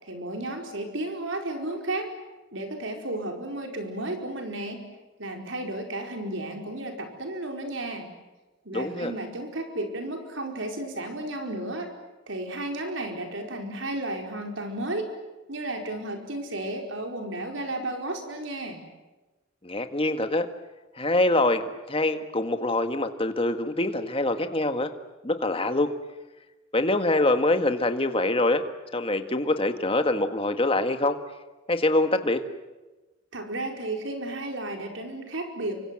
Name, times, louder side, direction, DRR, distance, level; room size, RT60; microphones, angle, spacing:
voice 1, 0.0-2.1 2.5-4.8 5.2-8.1 8.6-11.9 12.3-15.1 15.5-18.8 33.3-35.8, right 1 dB, 75° right, 3 dB, 4.8 m, -33 dB
voice 2, 8.7-9.1 19.6-20.5 21.0-24.9 25.2-25.9 26.7-28.6 28.9-31.2 31.7-32.4, left 2 dB, 30° left, 8 dB, 1.8 m, -24 dB
29.0 x 25.5 x 7.8 m, 1.1 s
head